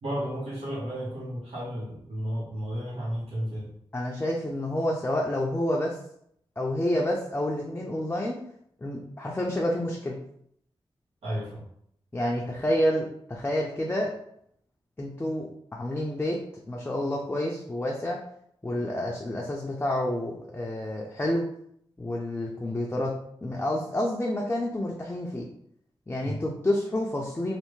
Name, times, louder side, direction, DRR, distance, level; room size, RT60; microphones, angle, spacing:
voice 1, 0.0-3.7 11.2-11.6 26.2-26.4, equal, 85° right, -9 dB, 1.3 m, -33 dB
voice 2, 3.9-6.0 6.6-8.4 8.8-10.2 12.1-14.1 15.0-16.4 16.7-18.2 18.6-21.5 22.0-23.1 23.4-25.5 26.1-27.6, left 1 dB, 20° left, -2 dB, 0.5 m, -29 dB
3.3 x 2.4 x 3.1 m, 0.69 s
wide cardioid pair, 80°, 10 cm